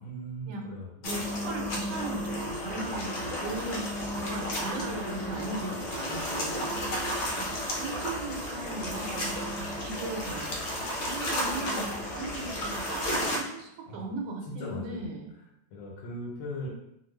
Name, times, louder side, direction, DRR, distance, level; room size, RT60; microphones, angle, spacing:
voice 1, 0.0-1.5 13.9-14.1 14.6-15.1 15.7-16.7, left 1 dB, 90° left, -3 dB, 1.4 m, -39 dB
sound 1, 1.0-13.4, equal, 65° left, 0.6 m, -33 dB
voice 2, 1.0-3.9 4.1-6.7 7.4-7.5 7.8-10.5 11.0-15.3, right 3 dB, 85° right, 1 dB, 1.3 m, -38 dB
2.9 x 2.4 x 3.2 m, 0.80 s
omnidirectional pair, 1.9 m